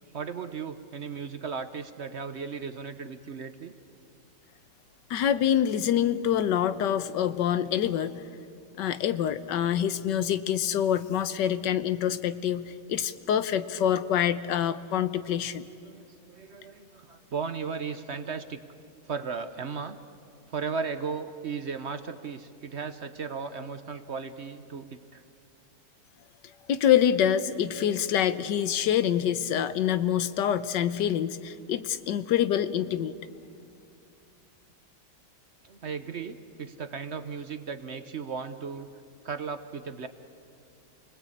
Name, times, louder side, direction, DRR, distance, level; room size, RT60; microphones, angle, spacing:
voice 1, 0.1-3.7 15.8-18.7 19.1-20.0 20.5-25.2 35.6-38.9 39.2-40.1, right 5 dB, 50° right, 10 dB, 1.0 m, -36 dB
voice 2, 5.1-8.2 8.8-15.6 26.7-33.2, left 9 dB, 85° left, 13 dB, 1.5 m, -26 dB
29.0 x 20.0 x 8.6 m, 2.4 s
omnidirectional pair, 1.8 m